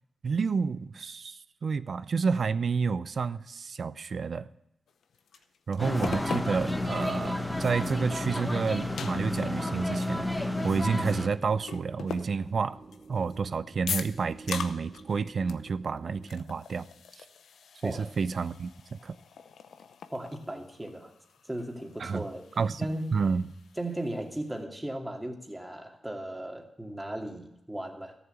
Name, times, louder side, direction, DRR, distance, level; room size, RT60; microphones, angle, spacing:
voice 1, 0.2-4.5 5.7-12.8 13.1-16.9 17.2-17.3 17.8-19.2 22.0-22.3 22.6-22.8 23.1-23.4, right 5 dB, 60° right, 0.5 m, -30 dB
sound 1, 4.9-7.3 7.8-7.9 8.2-11.3 11.6-13.4 13.9-15.2 15.5-15.7 16.0-24.6, left 7 dB, 85° left, 0.8 m, -42 dB
sound 2, 5.8-11.3, left 1 dB, 10° left, 1.1 m, -31 dB
sound 3, 9.9-16.3, right 4 dB, 40° right, 1.7 m, -50 dB
voice 2, 20.1-21.1 21.5-22.5 22.8-23.2 23.8-28.2, right 1 dB, 10° right, 2.3 m, -36 dB
14.0 x 7.2 x 8.1 m
cardioid pair, 65°, 0 cm